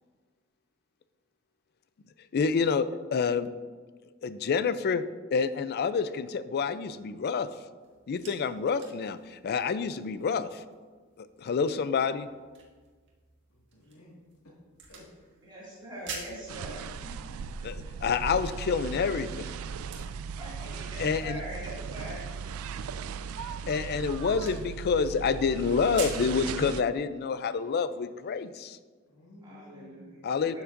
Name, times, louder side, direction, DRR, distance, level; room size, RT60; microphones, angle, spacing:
voice 1, 2.3-3.5 4.2-5.0 5.3-7.5 8.1-10.6 11.2-12.3 17.6-19.5 21.0-21.4 23.4-28.8 30.2-30.6, left 5 dB, 50° left, 14 dB, 0.4 m, -28 dB
sound 1, 7.8-26.3, right 4 dB, 55° right, 1.7 m, -49 dB
voice 2, 13.5-14.6 14.9-15.1 29.1-30.2, left 2 dB, 80° left, -4 dB, 1.8 m, -53 dB
voice 3, 15.4-17.3 20.3-22.3 29.4-30.6, right 1 dB, 20° right, -7 dB, 2.3 m, -43 dB
sound 2, 16.5-26.8, right 6 dB, 70° right, 0.3 m, -38 dB
11.5 x 7.1 x 2.5 m, 1.5 s
head